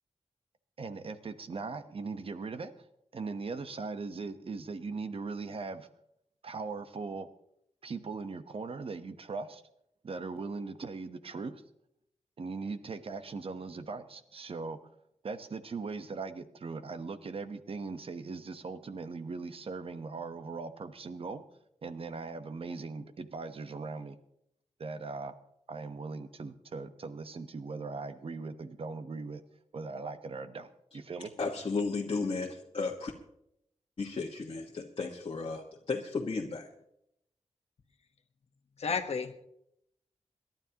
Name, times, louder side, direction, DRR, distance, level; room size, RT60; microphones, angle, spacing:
voice 1, 0.8-2.7 3.1-5.9 6.4-7.3 7.8-9.6 10.0-11.6 12.4-14.8 15.2-21.4 21.8-24.2 24.8-25.3 25.7-29.4 29.7-31.3, right 4 dB, 55° right, 10 dB, 1.0 m, -39 dB
voice 2, 31.4-33.1 34.0-36.7, left 4 dB, 50° left, -2 dB, 1.4 m, -34 dB
voice 3, 38.8-39.5, left 5 dB, 65° left, 6 dB, 1.2 m, -32 dB
27.5 x 12.0 x 2.9 m, 0.78 s
wide cardioid pair, 145°, 12 cm